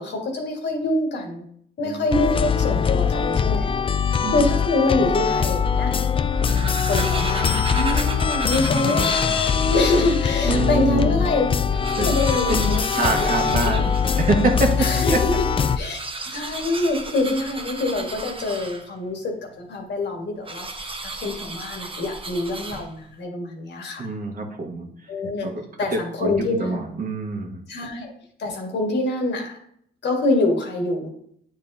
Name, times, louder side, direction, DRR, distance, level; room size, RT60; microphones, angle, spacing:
voice 1, 0.0-1.4 1.8-3.7 4.3-5.9 6.4-11.4 12.0-13.3 13.6-13.8 14.8-15.4 15.8-16.0 16.3-24.1 25.1-25.5 25.8-26.8 27.7-28.1 28.4-29.5 30.0-31.1, left 2 dB, 60° left, 2 dB, 1.7 m, -25 dB
sound 1, 2.1-15.8, left 6 dB, 25° left, 0.3 m, -22 dB
sound 2, 6.3-10.3 10.9-11.0 11.2-11.3 11.6-14.7 15.7-19.1 20.4-23.1, right 3 dB, 25° right, 0.9 m, -34 dB
voice 2, 10.4-11.3 12.0-12.1 12.5-15.2 24.0-25.1 25.4-25.6 25.9-27.6, right 3 dB, 45° right, 1 dB, 1.4 m, -25 dB
9.0 x 4.3 x 2.7 m, 0.66 s
cardioid pair, 90°, 20 cm